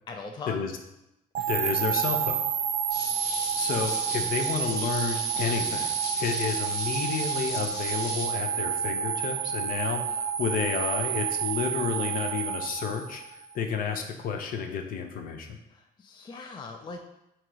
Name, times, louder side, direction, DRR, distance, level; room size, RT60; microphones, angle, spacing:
voice 1, 0.1-0.6 1.4-1.5 15.7-17.0, left 3 dB, 25° left, 4 dB, 0.4 m, -40 dB
sound 1, 1.3-13.5, right 9 dB, 45° right, 0.4 m, -30 dB
voice 2, 1.5-2.4 3.6-15.6, left 6 dB, 55° left, 5 dB, 0.7 m, -31 dB
sound 2, 2.9-8.3, left 3 dB, 80° left, 1.1 m, -38 dB
3.7 x 3.0 x 4.6 m, 0.86 s
cardioid pair, 110°, 17 cm